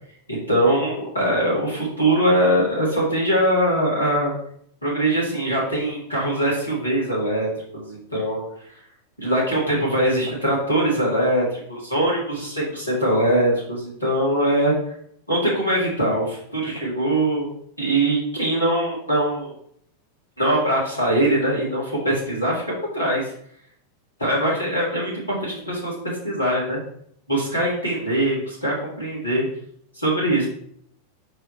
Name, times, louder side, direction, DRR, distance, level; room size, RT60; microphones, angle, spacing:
voice 1, 0.3-4.3 4.8-8.4 9.2-14.7 15.3-17.5 17.8-19.5 20.4-23.3 24.2-26.8 27.3-29.4 30.0-30.5, right 1 dB, 85° left, -6 dB, 2.5 m, -22 dB
4.8 x 4.8 x 4.4 m, 0.68 s
figure-of-eight pair, 90°, 0 cm